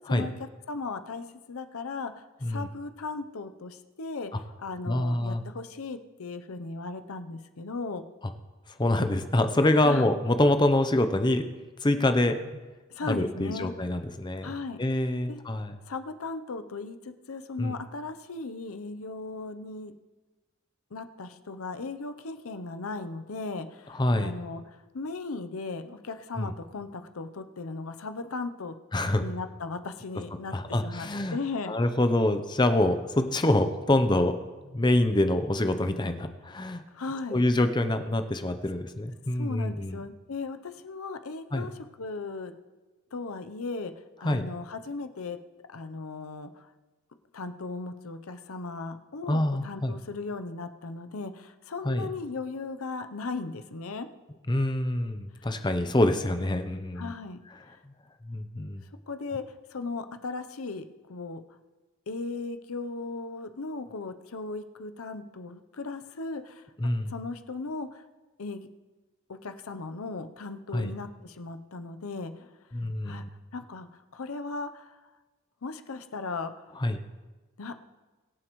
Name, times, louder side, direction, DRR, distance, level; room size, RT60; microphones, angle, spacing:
voice 1, 0.7-8.0 9.8-10.1 12.9-13.7 14.4-14.8 15.3-15.4 15.9-19.9 20.9-28.7 29.2-31.8 36.9-37.4 37.8-37.9 39.4-42.5 43.1-43.9 44.2-45.4 45.7-46.7 47.3-54.1 57.0-57.4 59.1-59.4 59.7-61.4 62.1-66.6 67.1-68.0 68.4-68.7 69.3-72.5 73.0-73.2 73.5-74.9 75.6-76.5 77.6-77.7, left 3 dB, 85° left, 9 dB, 0.7 m, -37 dB
voice 2, 4.9-5.4 8.8-11.5 11.8-12.4 13.0-14.5 14.8-15.8 17.6-17.7 23.9-24.3 26.4-26.5 28.9-29.2 30.5-31.4 31.7-34.3 34.7-36.8 37.3-40.0 41.5-41.7 44.2-44.4 49.3-49.9 51.8-52.1 54.5-57.1 58.3-58.8 66.8-67.1 70.7-70.9 72.7-73.3 76.8-77.0, left 1 dB, 20° left, 8 dB, 0.6 m, -25 dB
22.5 x 7.5 x 3.1 m, 1.2 s
head